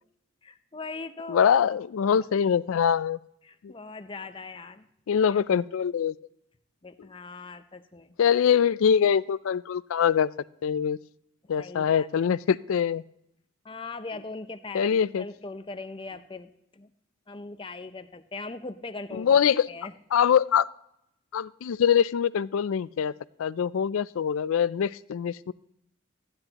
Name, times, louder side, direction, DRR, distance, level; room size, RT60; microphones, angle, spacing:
voice 1, 0.4-1.4 3.4-4.8 5.3-5.4 6.8-8.1 11.6-12.1 13.6-16.9 17.3-19.4 19.7-19.9, left 3 dB, 25° left, 10 dB, 0.6 m, -40 dB
voice 2, 1.3-3.2 3.6-3.7 5.1-6.1 8.2-10.3 10.6-11.0 11.5-13.0 14.7-15.3 19.2-19.7 20.1-20.7 21.3-23.1 23.4-25.5, left 8 dB, 80° left, 18 dB, 0.4 m, -23 dB
15.0 x 9.8 x 2.9 m, 0.76 s
head